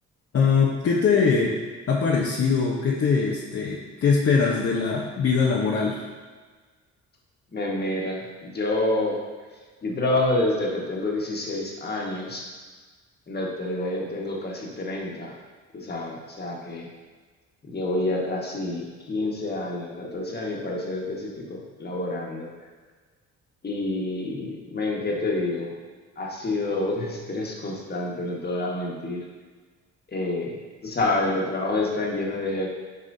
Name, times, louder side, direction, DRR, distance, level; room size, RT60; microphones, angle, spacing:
voice 1, 0.3-1.5 1.9-6.0, left 5 dB, 50° left, -4 dB, 1.0 m, -22 dB
voice 2, 7.5-9.2 9.8-12.4 13.3-15.3 15.7-16.9 17.7-22.5 23.6-25.7 26.2-29.2 30.1-30.6 30.8-32.7, left 2 dB, 35° left, -2 dB, 1.6 m, -28 dB
9.5 x 4.8 x 2.7 m, 1.4 s
cardioid pair, 90°, 30 cm